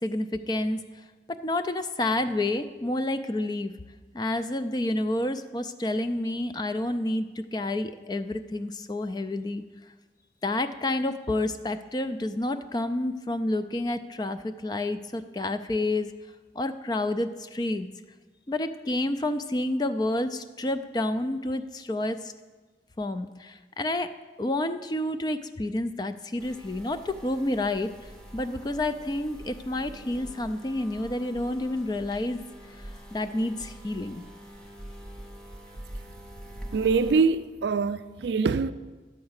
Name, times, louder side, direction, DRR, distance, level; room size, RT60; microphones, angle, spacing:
voice 1, 0.0-3.7 4.1-9.6 10.4-16.1 16.6-17.9 18.5-22.3 23.0-24.1 24.4-32.4 33.1-34.2, left 1 dB, 20° left, 0.3 m, -29 dB
sound 1, 26.4-37.2, right 1 dB, 5° left, 0.7 m, -44 dB
voice 2, 36.7-38.7, right 4 dB, 75° right, 0.4 m, -24 dB
10.5 x 4.8 x 8.0 m
head